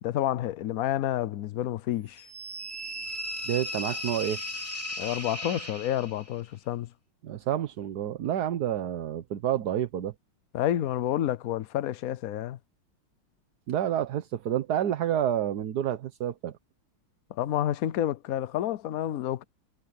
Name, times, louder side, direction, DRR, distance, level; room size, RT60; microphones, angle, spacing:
voice 1, 0.0-2.2 5.0-6.9 10.5-12.6 17.3-19.4, left 12 dB, 70° left, 0.8 m, -29 dB
sound 1, 2.2-6.3, equal, 5° right, 2.6 m, -36 dB
voice 2, 3.4-4.4 7.2-10.1 13.7-16.5, right 10 dB, 60° right, 1.3 m, -29 dB
omnidirectional pair, 2.3 m